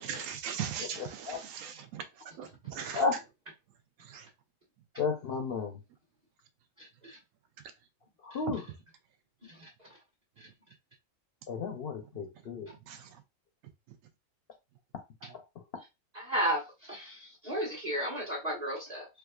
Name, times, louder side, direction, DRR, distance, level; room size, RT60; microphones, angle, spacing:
voice 1, 0.0-2.0 2.4-3.0 4.1-4.2 12.9-13.0, right 8 dB, 75° right, 1.0 m, -39 dB
voice 2, 5.0-5.8 8.2-8.7 11.5-12.7, left 4 dB, 60° left, 0.7 m, -32 dB
voice 3, 16.1-16.6 16.9-17.1 17.4-19.1, right 1 dB, 35° right, 1.1 m, -32 dB
4.5 x 2.3 x 2.3 m
omnidirectional pair, 1.4 m